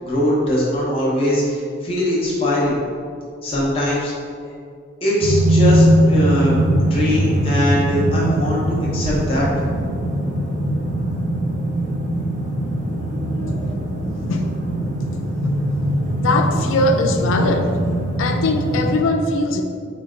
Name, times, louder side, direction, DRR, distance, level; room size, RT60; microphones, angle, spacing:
voice 1, 0.0-2.8 3.4-4.1 5.0-6.6 6.9-9.5, equal, 30° left, -6 dB, 0.7 m, -21 dB
sound 1, 5.2-19.0, right 1 dB, 40° right, 0.5 m, -21 dB
voice 2, 14.3-14.6 16.2-17.8 18.2-19.6, left 2 dB, 85° left, 5 dB, 0.3 m, -20 dB
3.9 x 2.2 x 3.7 m, 2.2 s
head